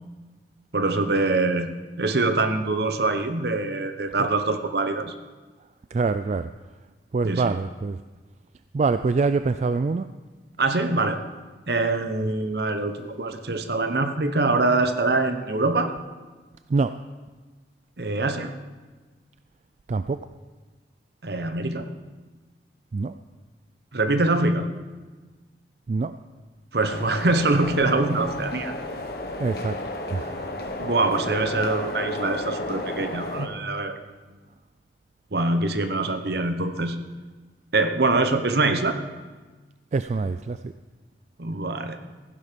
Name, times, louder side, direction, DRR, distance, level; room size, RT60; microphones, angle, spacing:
voice 1, 0.7-1.7 2.0-5.1 7.2-7.5 10.6-11.2 11.7-15.9 18.0-18.5 21.2-21.9 23.9-24.7 26.7-28.7 30.8-34.0 35.3-37.0 37.7-39.0 41.4-42.0, right 2 dB, 65° right, 8 dB, 1.0 m, -24 dB
voice 2, 5.9-6.5 7.1-8.0 8.7-10.1 16.7-17.0 19.9-20.3 22.9-23.2 25.9-26.2 29.4-29.8 30.1-30.5 39.9-40.7, right 4 dB, 40° right, 11 dB, 0.3 m, -25 dB
sound 1, 26.9-33.5, left 1 dB, 60° left, 1.4 m, -33 dB
15.0 x 11.0 x 5.2 m, 1.3 s
head